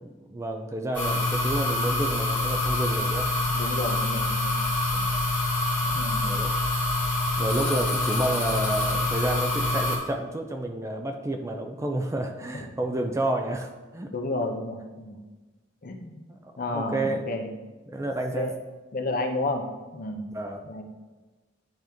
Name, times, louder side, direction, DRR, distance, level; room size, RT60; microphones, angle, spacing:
voice 1, 0.0-3.3 4.9-5.2 6.2-6.5 7.4-14.1 16.3-17.2 17.9-18.5 20.3-20.6, right 1 dB, 15° right, 4 dB, 0.4 m, -30 dB
sound 1, 0.9-10.0, left 2 dB, 10° left, 1.7 m, -26 dB
voice 2, 3.5-4.5 5.8-6.4 14.1-15.2 15.8-16.2 16.6-17.5 18.4-18.5 18.9-19.7 19.9-20.3 20.6-20.8, left 2 dB, 45° left, 4 dB, 0.6 m, -31 dB
10.0 x 3.5 x 3.0 m, 1.2 s
head